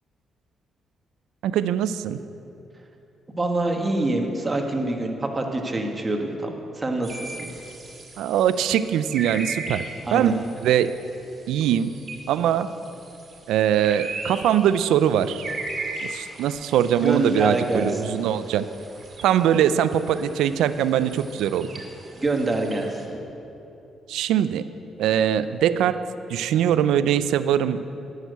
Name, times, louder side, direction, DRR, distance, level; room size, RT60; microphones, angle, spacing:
voice 1, 1.4-2.2 8.2-9.8 10.1-10.9 11.5-11.9 12.3-12.7 13.5-15.4 16.0-18.6 19.2-21.7 24.1-24.7 25.0-26.0 26.3-27.8, right 10 dB, 85° right, 13 dB, 0.4 m, -22 dB
voice 2, 3.4-7.4 10.0-10.4 17.0-17.9 22.1-23.0, right 2 dB, 20° right, 2 dB, 1.4 m, -25 dB
sound 1, 7.0-23.0, right 3 dB, 45° right, 2.2 m, -38 dB
11.5 x 6.5 x 8.0 m, 3.0 s
cardioid pair, 90°, 0 cm